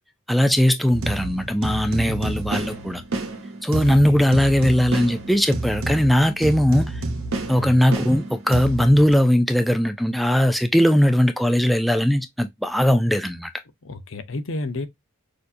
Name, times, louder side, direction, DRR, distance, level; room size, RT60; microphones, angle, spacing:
voice 1, 0.3-3.0 3.6-7.0 7.5-13.5, equal, ahead, 0.4 m, -19 dB
sound 1, 0.9-9.1, right 2 dB, 70° right, 1.1 m, -29 dB
voice 2, 2.1-2.4 3.7-4.2 7.6-7.8 13.8-14.9, left 2 dB, 65° left, 0.8 m, -32 dB
6.4 x 2.8 x 2.5 m
head